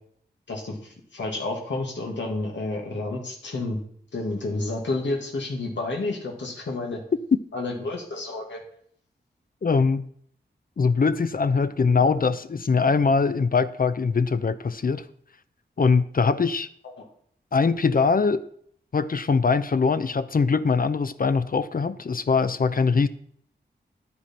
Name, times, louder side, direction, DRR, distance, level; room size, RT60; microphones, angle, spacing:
voice 1, 0.5-3.8 4.1-7.0 7.5-8.6, left 2 dB, 90° left, -1 dB, 2.0 m, -30 dB
voice 2, 9.6-10.0 10.8-15.0 15.8-16.7 17.5-18.4 18.9-23.1, left 4 dB, 50° left, 12 dB, 0.6 m, -22 dB
11.0 x 9.7 x 4.3 m, 0.62 s
wide cardioid pair, 85°, 18 cm